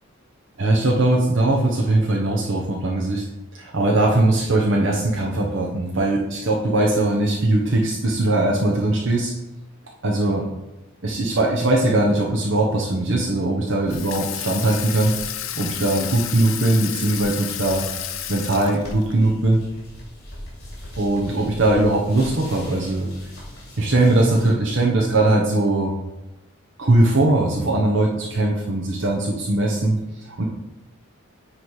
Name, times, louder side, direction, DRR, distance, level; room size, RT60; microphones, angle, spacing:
voice 1, 0.6-3.2 3.5-9.3 10.0-10.5 11.0-15.1 15.5-17.8 18.3-19.6 21.0-23.1 23.8-25.9 26.8-30.0 30.2-30.4, right 2 dB, 60° right, -2 dB, 0.9 m, -20 dB
Water tap faucet / Sink (filling or washing), 13.9-19.1, left 10 dB, 70° left, 0.6 m, -31 dB
sound 1, 13.9-24.5, equal, 50° left, 2.7 m, -41 dB
9.6 x 3.3 x 4.7 m, 0.97 s
head